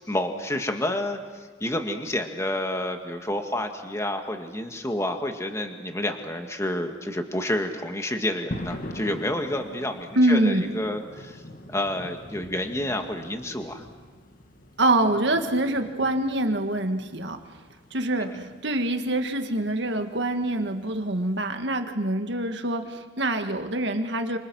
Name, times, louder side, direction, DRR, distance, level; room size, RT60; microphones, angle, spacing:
voice 1, 0.0-11.4 11.7-13.8, left 1 dB, 15° left, 5 dB, 1.8 m, -29 dB
sound 1, 8.5-21.4, left 1 dB, 45° left, 2.0 m, -43 dB
voice 2, 10.2-10.7 14.8-17.4 17.9-24.4, right 1 dB, 60° right, 6 dB, 1.9 m, -25 dB
29.5 x 26.5 x 6.3 m, 1.4 s
head